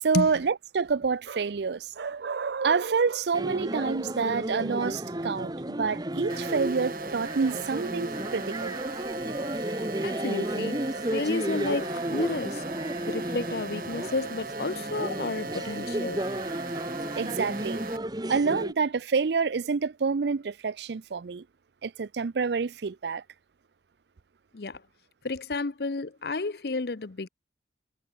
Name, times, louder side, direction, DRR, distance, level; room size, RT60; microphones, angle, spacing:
voice 1, 0.0-8.8 17.2-17.8 18.3-21.4 21.8-23.2, right 5 dB, 70° right, 0.5 m, -28 dB
sound 1, 3.3-18.7, right 1 dB, 20° right, 1.2 m, -33 dB
sound 2, 6.3-18.0, right 3 dB, 50° right, 2.4 m, -38 dB
voice 2, 10.0-10.8 11.1-12.6 13.0-16.2 24.5-24.8 25.2-27.3, left 3 dB, 60° left, 0.7 m, -31 dB
head